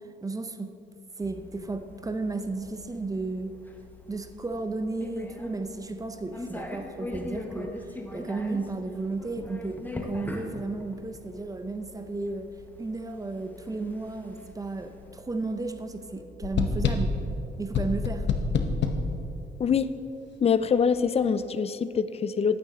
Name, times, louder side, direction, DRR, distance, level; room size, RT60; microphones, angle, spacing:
voice 1, 0.2-0.7 1.2-3.5 4.1-12.5 12.8-17.2 17.6-18.3, right 3 dB, 15° right, 8 dB, 0.6 m, -33 dB
sound 1, 1.2-16.2, left 1 dB, 10° left, 0.9 m, -42 dB
sound 2, 16.4-17.2 17.7-19.1, left 5 dB, 65° left, 0.8 m, -26 dB
voice 2, 19.6-19.9 20.4-22.6, left 6 dB, 30° left, 13 dB, 0.4 m, -24 dB
9.5 x 8.7 x 3.8 m, 2.9 s
cardioid pair, 90°, 20 cm